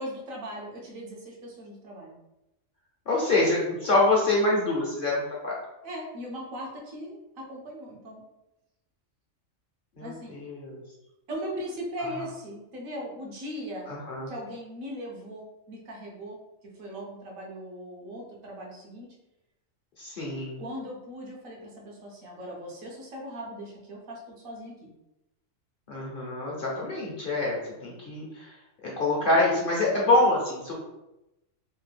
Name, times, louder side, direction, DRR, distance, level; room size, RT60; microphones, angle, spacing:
voice 1, 0.0-2.1 5.8-8.2 10.0-10.3 11.3-13.9 14.3-16.4 16.8-19.1 20.6-24.8, equal, 80° right, -2 dB, 1.3 m, -39 dB
voice 2, 3.1-5.6 10.0-10.8 13.9-14.3 20.0-20.6 25.9-28.3 28.8-30.7, left 2 dB, 50° left, -3 dB, 0.7 m, -25 dB
3.4 x 2.2 x 3.3 m, 0.92 s
omnidirectional pair, 1.4 m